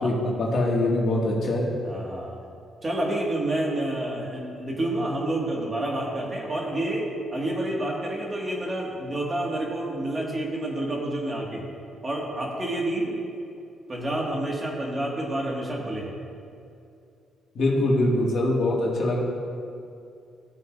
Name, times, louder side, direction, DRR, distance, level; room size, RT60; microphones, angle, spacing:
voice 1, 0.0-1.7 17.6-19.2, left 1 dB, 60° left, -3 dB, 2.1 m, -23 dB
voice 2, 1.8-2.4 2.8-7.0 7.3-11.6 12.0-13.2 13.9-16.1, right 1 dB, 30° right, -2 dB, 2.0 m, -29 dB
15.5 x 6.6 x 2.6 m, 2.5 s
cardioid pair, 90°, 0 cm